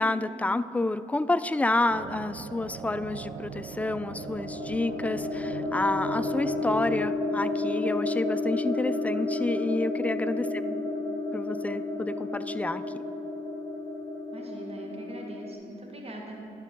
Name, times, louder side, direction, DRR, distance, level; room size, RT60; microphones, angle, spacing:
voice 1, 0.0-10.6 11.3-12.8, left 2 dB, 10° left, 13 dB, 0.3 m, -29 dB
sound 1, 1.9-7.1, right 6 dB, 60° right, 0.5 m, -41 dB
sound 2, 3.6-15.5, left 2 dB, 15° right, 1.8 m, -31 dB
voice 2, 10.6-10.9 14.3-16.4, right 1 dB, 40° right, 0 dB, 1.7 m, -42 dB
11.0 x 4.6 x 5.2 m, 2.5 s
supercardioid pair, 45°, 16 cm